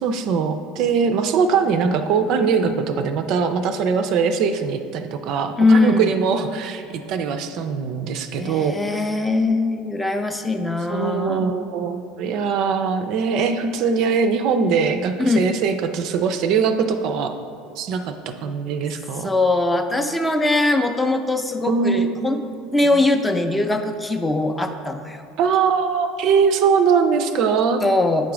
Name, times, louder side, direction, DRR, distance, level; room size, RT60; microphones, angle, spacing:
voice 1, 0.0-9.1 10.9-17.3 17.8-19.3 21.7-22.4 25.4-27.8, right 6 dB, 50° right, 8 dB, 0.4 m, -21 dB
voice 2, 5.6-6.1 8.4-11.6 15.2-15.4 19.2-22.4 22.7-25.2 27.8-28.3, left 2 dB, 10° left, 6 dB, 0.5 m, -21 dB
8.3 x 3.8 x 4.7 m, 2.3 s
figure-of-eight pair, 70°, 0 cm